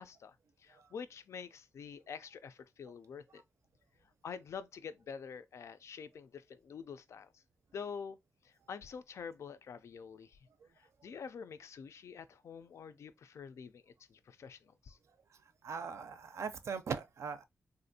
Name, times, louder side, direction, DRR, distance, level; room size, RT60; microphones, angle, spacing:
voice 1, 0.0-3.4 4.2-7.4 7.7-8.2 8.4-10.4 10.8-15.0, left 6 dB, 80° left, 0.3 m, -47 dB
voice 2, 15.6-17.4, right 6 dB, 75° right, 0.5 m, -39 dB
3.4 x 2.5 x 2.6 m
wide cardioid pair, 155°, 5 cm